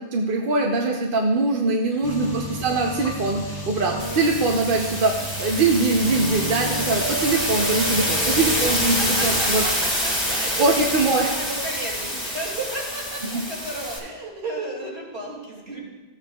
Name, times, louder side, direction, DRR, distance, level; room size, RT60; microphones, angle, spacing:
voice 1, 0.0-9.6 10.6-11.3 13.3-13.4, right 3 dB, 60° right, 1 dB, 0.9 m, -22 dB
voice 2, 1.9-2.5 9.0-15.9, right 2 dB, 80° right, -4 dB, 2.7 m, -33 dB
sound 1, 2.0-9.4, equal, 25° left, 0.6 m, -32 dB
sound 2, 4.0-14.0, equal, 5° left, 1.9 m, -26 dB
14.5 x 8.2 x 2.3 m, 1.2 s
omnidirectional pair, 1.1 m